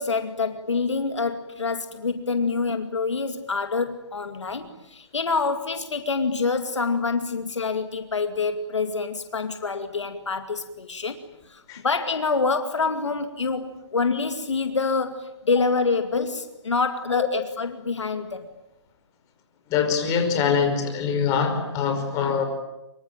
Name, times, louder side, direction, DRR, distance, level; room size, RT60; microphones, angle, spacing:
voice 1, 0.0-18.5, left 4 dB, 80° left, 8 dB, 2.3 m, -26 dB
voice 2, 19.7-22.4, left 6 dB, 25° left, 6 dB, 5.2 m, -23 dB
25.0 x 24.0 x 9.0 m, 0.95 s
hypercardioid pair, 145°, 15 cm